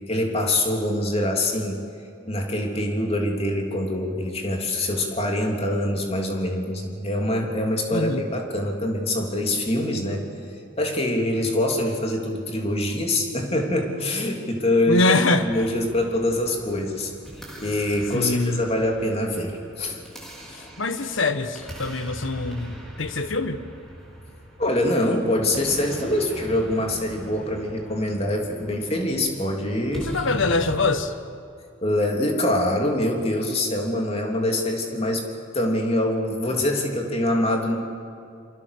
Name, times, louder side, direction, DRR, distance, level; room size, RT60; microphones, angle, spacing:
voice 1, 0.1-1.8 2.3-10.2 10.8-15.1 15.4-17.1 17.6-20.0 24.6-30.1 31.8-35.2 35.5-37.8, left 1 dB, 30° left, 2 dB, 3.2 m, -24 dB
voice 2, 7.9-8.2 14.9-15.5 18.1-18.6 20.8-23.6 30.1-31.1, left 3 dB, 70° left, 9 dB, 1.4 m, -24 dB
sound 1, 15.4-30.8, equal, 5° left, 5.1 m, -40 dB
27.5 x 25.5 x 6.8 m, 2.5 s
head